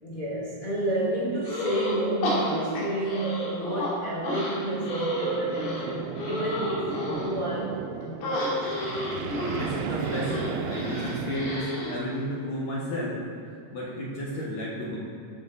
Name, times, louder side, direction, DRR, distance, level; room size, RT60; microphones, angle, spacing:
voice 1, 0.0-8.7, right 1 dB, 30° left, -8 dB, 0.8 m, -31 dB
sound 1, 1.4-2.0 2.2-3.9 4.2-7.3 8.2-11.9, left 1 dB, 80° left, 4.5 m, -31 dB
sound 2, 3.9-11.6, right 7 dB, 85° right, 2.2 m, -35 dB
voice 2, 9.5-13.1 13.7-15.0, equal, 55° left, -6 dB, 2.0 m, -32 dB
14.5 x 7.1 x 4.1 m, 2.5 s
omnidirectional pair, 5.0 m